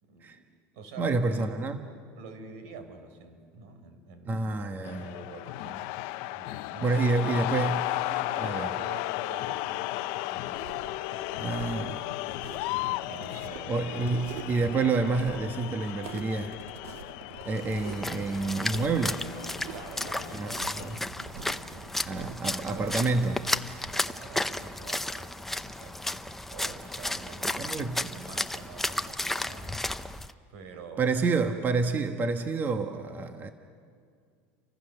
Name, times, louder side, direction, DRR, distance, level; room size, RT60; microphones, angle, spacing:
voice 1, 0.0-0.5 0.7-7.4 7.8-10.9 11.2-11.8 12.8-14.2 17.4-17.5 19.7-21.0 21.3-23.1 23.9-30.2 30.5-31.2, right 4 dB, 75° right, 8 dB, 4.2 m, -47 dB
voice 2, 1.0-1.8 4.3-5.1 6.8-7.9 8.4-8.7 11.4-12.0 13.7-16.6 17.4-19.2 20.3-21.0 22.1-23.4 27.6-28.1 31.0-33.5, right 3 dB, 25° right, 7 dB, 1.2 m, -28 dB
sound 1, 4.8-21.0, left 17 dB, 65° left, 0.8 m, -35 dB
sound 2, 10.4-23.6, right 6 dB, 90° right, 1.9 m, -45 dB
Splash splatter, 17.6-30.3, left 1 dB, 5° left, 0.7 m, -34 dB
30.0 x 24.5 x 6.7 m, 2.2 s
supercardioid pair, 140°, 7 cm